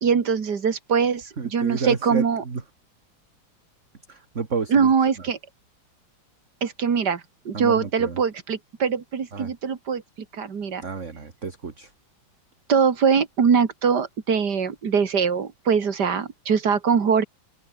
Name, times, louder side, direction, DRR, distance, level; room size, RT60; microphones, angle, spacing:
voice 1, 0.0-2.4 4.7-5.4 6.6-10.0 10.3-10.8 12.7-17.2, right 6 dB, 60° right, 2.6 m, -22 dB
voice 2, 1.4-2.6 4.1-4.9 7.5-8.2 9.3-9.5 10.8-11.9, right 5 dB, 40° right, 2.4 m, -30 dB
omnidirectional pair, 2.1 m